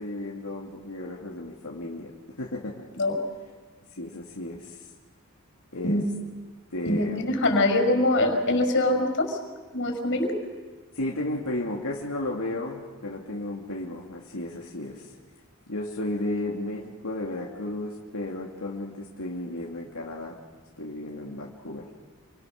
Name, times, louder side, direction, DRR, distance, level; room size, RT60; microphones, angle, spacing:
voice 1, 0.0-2.1 2.4-2.9 4.0-4.8 5.7-6.0 6.7-7.3 11.0-15.0 15.7-20.3 20.8-21.8, left 1 dB, 85° left, -2 dB, 2.6 m, -33 dB
voice 2, 6.9-9.4 9.7-10.3, left 1 dB, 60° left, 4 dB, 5.8 m, -23 dB
29.0 x 24.0 x 6.6 m, 1.4 s
head